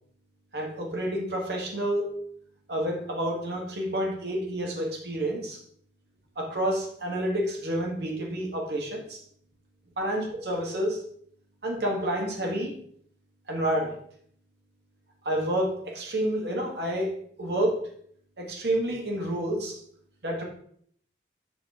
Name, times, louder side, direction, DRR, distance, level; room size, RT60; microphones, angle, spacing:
voice 1, 0.5-2.2 2.7-5.6 6.4-9.2 10.0-11.0 11.6-12.8 13.5-13.9 15.2-17.1 17.4-17.9 18.4-19.8 20.2-20.4, right 1 dB, 65° right, 0 dB, 1.6 m, -29 dB
6.9 x 5.2 x 3.7 m, 0.63 s
head